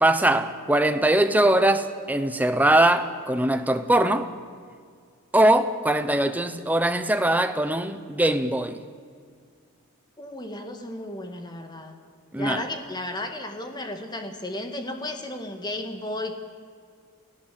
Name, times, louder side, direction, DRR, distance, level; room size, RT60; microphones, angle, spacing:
voice 1, 0.0-4.3 5.3-8.8 12.3-12.7, right 1 dB, 10° right, 0.9 m, -21 dB
voice 2, 10.2-12.0 12.4-16.5, left 1 dB, 20° left, 1.9 m, -34 dB
28.5 x 16.5 x 7.7 m
head